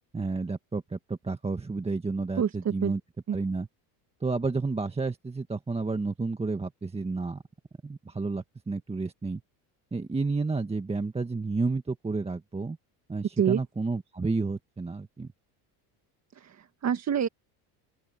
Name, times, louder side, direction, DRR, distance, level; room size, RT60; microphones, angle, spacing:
voice 1, 0.1-3.0 3.3-3.7 4.2-7.4 7.8-9.4 9.9-12.8 13.1-15.3, right 3 dB, 15° right, 1.6 m, -31 dB
voice 2, 2.4-2.9 3.3-3.4 13.4-13.6 16.3-17.3, right 8 dB, 35° right, 1.8 m, -27 dB
open air
supercardioid pair, 110°, 45 cm